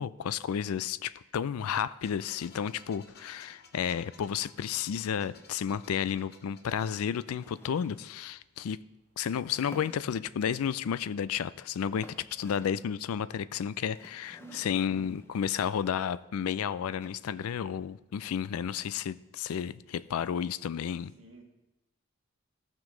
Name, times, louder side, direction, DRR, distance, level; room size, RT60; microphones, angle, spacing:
voice 1, 0.0-8.8 9.2-21.1, left 8 dB, 85° left, 0.4 m, -32 dB
sound 1, 2.0-7.8, left 4 dB, 45° left, 0.9 m, -57 dB
sound 2, 6.9-8.2 9.4-10.5 11.4-11.5 11.8-13.0 13.9-15.4 17.0-17.6, left 1 dB, 10° left, 0.4 m, -53 dB
voice 2, 14.4-14.7 21.2-21.4, right 3 dB, 60° right, 1.9 m, -50 dB
15.0 x 6.1 x 3.8 m
head